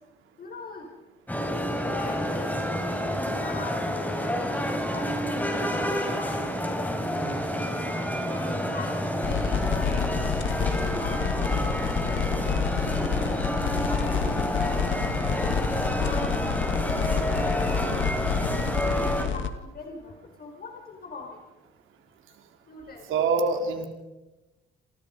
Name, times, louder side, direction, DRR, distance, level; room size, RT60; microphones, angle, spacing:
voice 1, 0.4-0.9 1.8-2.8 3.2-7.9 8.3-10.1 10.6-15.4 15.9-18.5 18.9-21.4 22.7-23.1, left 3 dB, 50° left, 1 dB, 5.1 m, -42 dB
sound 1, 1.3-19.2, equal, 10° left, 6.0 m, -29 dB
voice 2, 7.1-7.4 23.1-23.9, right 4 dB, 85° right, 4 dB, 4.1 m, -26 dB
sound 2, 9.2-19.5, left 7 dB, 75° left, 2.1 m, -28 dB
28.5 x 28.5 x 5.4 m, 1.1 s
cardioid pair, 90°, 20 cm